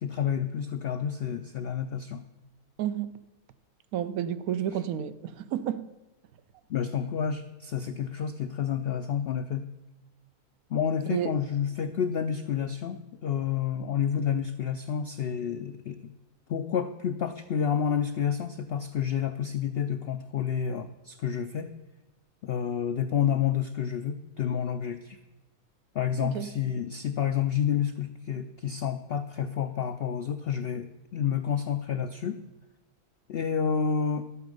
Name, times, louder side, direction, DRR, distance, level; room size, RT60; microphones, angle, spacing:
voice 1, 0.0-2.2 6.7-9.6 10.7-16.1 16.5-21.7 22.4-25.2 25.9-32.4 33.3-34.3, left 8 dB, 80° left, 0.5 m, -29 dB
voice 2, 2.8-3.1 3.9-5.9 11.1-11.4 26.2-26.5, right 10 dB, 75° right, 1.0 m, -31 dB
11.5 x 8.5 x 5.3 m
omnidirectional pair, 1.6 m